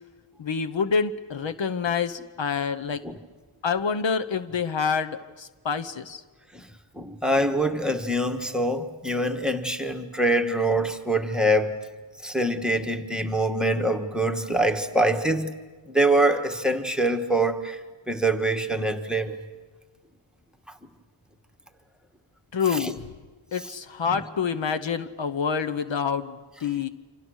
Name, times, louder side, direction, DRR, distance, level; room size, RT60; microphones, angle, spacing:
voice 1, 0.4-3.0 3.6-6.2 22.5-23.1 23.5-26.9, left 6 dB, 70° left, 9 dB, 1.0 m, -27 dB
voice 2, 6.9-11.8 12.2-15.5 15.9-17.8 18.1-19.4 22.7-22.9 24.1-24.2, right 1 dB, ahead, 6 dB, 1.4 m, -24 dB
28.5 x 26.0 x 6.4 m, 1.3 s
wide cardioid pair, 120°, 46 cm